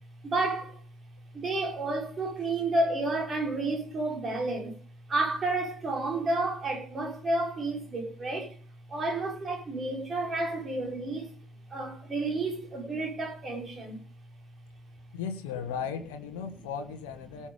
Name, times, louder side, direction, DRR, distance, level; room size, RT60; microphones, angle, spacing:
voice 1, 0.2-0.8 1.3-4.8 5.1-8.6 8.9-11.3 11.7-14.0, right 2 dB, 25° right, 4.5 m, -31 dB
voice 2, 15.1-17.5, left 7 dB, 65° left, 1.5 m, -36 dB
18.0 x 7.3 x 5.2 m
figure-of-eight pair, 65°, 0 cm